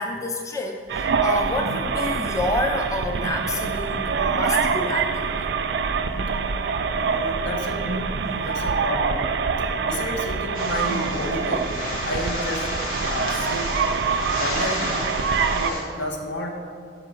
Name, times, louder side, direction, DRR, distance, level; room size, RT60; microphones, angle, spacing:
voice 1, 0.0-5.3, left 1 dB, 15° left, 3 dB, 0.3 m, -28 dB
sound 1, 0.9-15.7, right 5 dB, 65° right, 0.3 m, -25 dB
voice 2, 6.9-8.0 8.4-9.3 9.8-11.7 12.1-12.7 13.0-13.7 14.4-15.0 15.5-16.5, left 1 dB, 80° left, 1 dB, 1.1 m, -31 dB
sound 2, 10.5-15.8, left 1 dB, 45° left, 1.5 m, -31 dB
5.8 x 5.1 x 6.1 m, 2.3 s
head